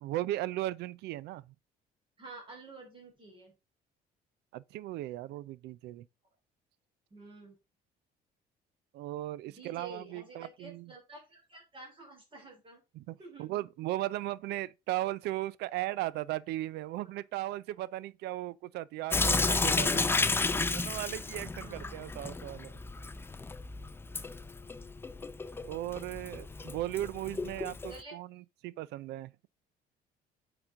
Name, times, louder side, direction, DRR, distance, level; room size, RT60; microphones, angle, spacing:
voice 1, 0.0-1.5 4.5-6.1 8.9-10.9 12.9-20.1 20.7-22.7 25.7-29.3, right 15 dB, 80° right, 0.5 m, -37 dB
voice 2, 2.2-3.5 7.1-7.6 9.5-12.8 13.2-13.6 17.0-17.2 21.6-21.9 27.9-28.1, right 3 dB, 30° right, 2.9 m, -50 dB
Sink (filling or washing) / Drip, 19.1-28.0, left 3 dB, 15° left, 0.4 m, -32 dB
8.8 x 4.2 x 3.6 m
cardioid pair, 110°, 17 cm